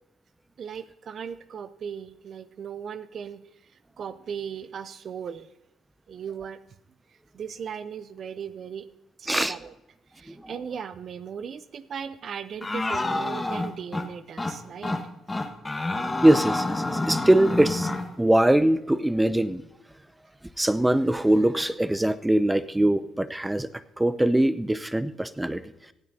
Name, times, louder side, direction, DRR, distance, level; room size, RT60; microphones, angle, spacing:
voice 1, 0.6-3.7 4.0-5.5 6.1-6.6 7.3-8.9 9.2-9.7 10.1-15.0, right 7 dB, 55° right, 14 dB, 0.5 m, -37 dB
sound 1, 12.6-14.1 14.4-14.5 14.8-15.0 15.3-18.1, left 2 dB, 20° left, 1.5 m, -28 dB
voice 2, 16.2-17.9 18.2-19.6 20.6-23.7 24.0-25.6, right 1 dB, 10° right, 14 dB, 0.7 m, -22 dB
25.5 x 9.4 x 2.8 m, 0.91 s
hypercardioid pair, 50°, 0 cm